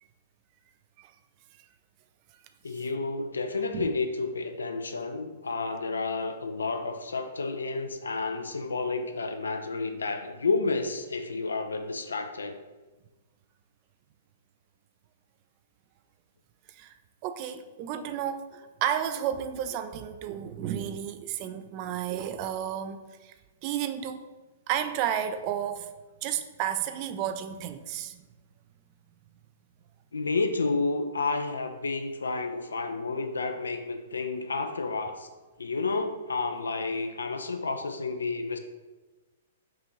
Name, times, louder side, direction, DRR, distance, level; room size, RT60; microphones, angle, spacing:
voice 1, 2.6-12.6 30.1-35.3 35.6-38.6, left 3 dB, 75° left, 6 dB, 0.4 m, -30 dB
voice 2, 17.2-23.3 23.6-24.3 24.7-25.9 26.2-28.2, right 10 dB, 40° right, 10 dB, 0.3 m, -32 dB
5.5 x 2.5 x 3.0 m, 1.2 s
figure-of-eight pair, 110°, 0 cm